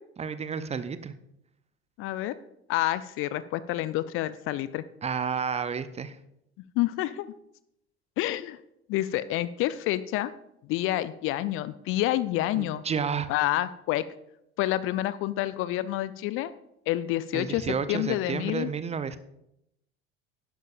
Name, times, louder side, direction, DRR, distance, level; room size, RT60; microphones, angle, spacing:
voice 1, 0.2-1.1 5.0-6.2 12.5-13.3 17.3-19.2, right 6 dB, 20° right, 13 dB, 0.6 m, -31 dB
voice 2, 2.0-2.3 2.7-4.8 6.8-7.3 8.2-8.6 8.9-10.3 10.7-12.8 13.3-14.0 14.6-16.5 16.9-18.7, left 14 dB, 40° left, 16 dB, 0.5 m, -28 dB
11.5 x 10.5 x 2.5 m, 0.81 s
figure-of-eight pair, 65°, 34 cm